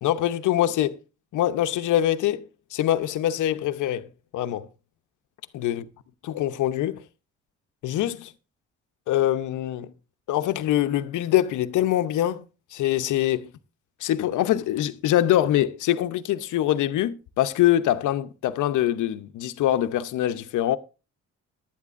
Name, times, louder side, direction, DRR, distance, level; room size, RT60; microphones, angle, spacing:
voice 1, 0.0-1.0 1.3-4.7 5.5-5.9 6.2-7.0 7.8-8.3 9.1-9.9 10.3-12.4 12.7-13.5 14.0-20.8, left 12 dB, 80° left, 0.8 m, -24 dB
17.5 x 11.5 x 2.5 m
cardioid pair, 90°, 30 cm